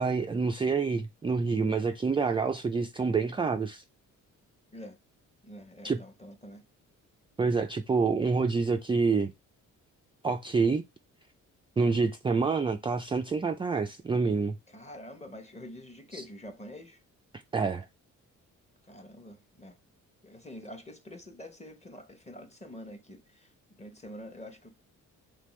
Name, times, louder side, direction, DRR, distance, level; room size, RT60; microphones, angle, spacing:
voice 1, 0.0-3.8 5.8-6.0 7.4-9.3 10.2-10.8 11.8-14.5 16.1-16.2 17.5-17.9, right 4 dB, 15° right, 0.3 m, -27 dB
voice 2, 5.4-6.6 14.7-17.0 18.8-19.8 20.2-24.7, left 1 dB, 20° left, 1.0 m, -46 dB
3.4 x 3.3 x 3.1 m
cardioid pair, 75°, 32 cm